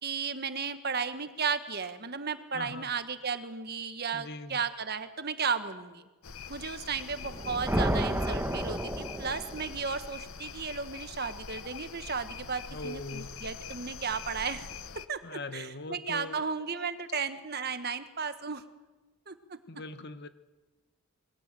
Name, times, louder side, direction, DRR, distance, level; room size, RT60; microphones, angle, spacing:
voice 1, 0.0-6.0 6.5-14.7 15.1-18.6 19.3-19.6, right 5 dB, 45° right, 10 dB, 1.5 m, -34 dB
voice 2, 2.5-2.9 4.1-4.6 12.7-13.3 15.2-16.4 19.7-20.3, left 2 dB, 50° left, 11 dB, 1.2 m, -41 dB
sound 1, 6.2-15.1, left 6 dB, 70° left, 1.1 m, -44 dB
sound 2, 7.2-9.8, right 1 dB, 10° right, 1.1 m, -31 dB
27.0 x 22.0 x 7.7 m, 1.2 s
head